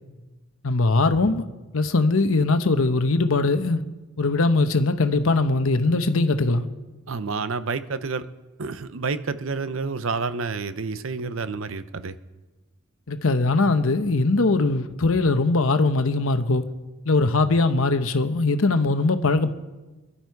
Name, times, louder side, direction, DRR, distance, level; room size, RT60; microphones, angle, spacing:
voice 1, 0.6-1.5 1.7-3.8 4.2-6.7 13.1-16.6 17.1-19.5, left 3 dB, 75° left, 0.9 m, -21 dB
voice 2, 7.1-8.2 8.6-12.2, right 4 dB, 65° right, 0.7 m, -29 dB
21.5 x 11.5 x 4.7 m
head